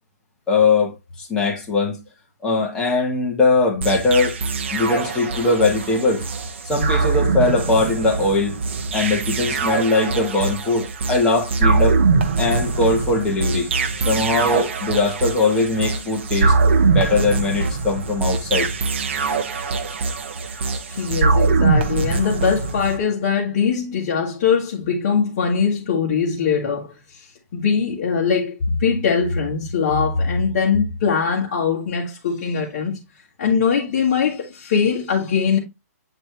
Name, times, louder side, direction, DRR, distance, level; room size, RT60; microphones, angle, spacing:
voice 1, 0.5-2.0 2.4-4.4 4.7-6.2 6.6-8.6 8.9-12.0 12.4-13.7 14.1-16.5 16.9-18.7, left 3 dB, 10° left, 1.1 m, -20 dB
sound 1, 3.8-23.0, right 4 dB, 45° right, 0.9 m, -22 dB
voice 2, 20.9-26.9 27.5-33.0 33.4-35.6, left 6 dB, 35° left, 1.4 m, -21 dB
7.9 x 4.1 x 3.2 m
hypercardioid pair, 180°, 9 cm